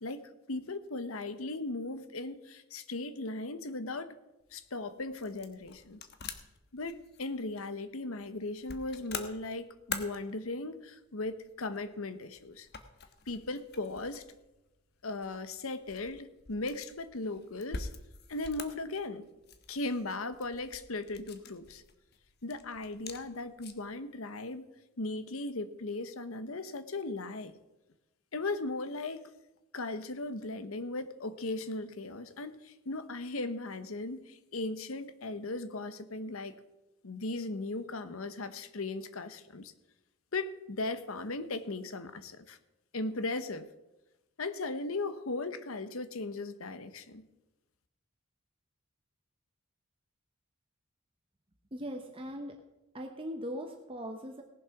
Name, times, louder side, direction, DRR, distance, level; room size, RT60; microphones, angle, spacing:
voice 1, 0.0-4.2 4.5-6.0 6.7-12.7 13.3-14.2 15.0-17.9 18.3-19.3 19.7-21.8 22.4-24.7 25.0-27.5 28.3-29.3 29.7-36.5 37.0-39.7 40.3-42.6 42.9-43.7 44.4-47.3, left 2 dB, 85° left, 12 dB, 1.0 m, -37 dB
sound 1, 4.4-24.0, left 5 dB, 50° left, 1.1 m, -47 dB
voice 2, 51.7-52.7 52.9-54.4, equal, 25° right, 3 dB, 0.9 m, -40 dB
18.0 x 7.3 x 5.9 m, 0.97 s
head